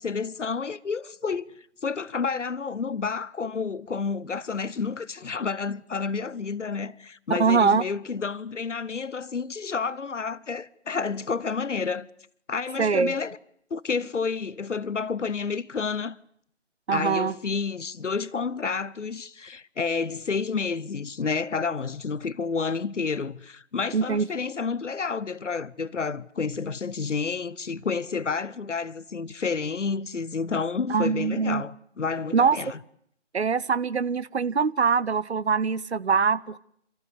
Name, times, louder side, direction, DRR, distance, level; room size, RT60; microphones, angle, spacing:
voice 1, 0.0-1.5 1.8-12.1 12.5-13.4 13.7-16.2 16.9-32.8, left 5 dB, 80° left, 0.9 m, -30 dB
voice 2, 7.4-7.8 12.8-13.1 16.9-17.3 23.9-24.3 30.9-31.6 32.3-32.6 33.3-36.6, right 5 dB, 65° right, 0.9 m, -23 dB
30.0 x 14.0 x 9.7 m
figure-of-eight pair, 160°, 36 cm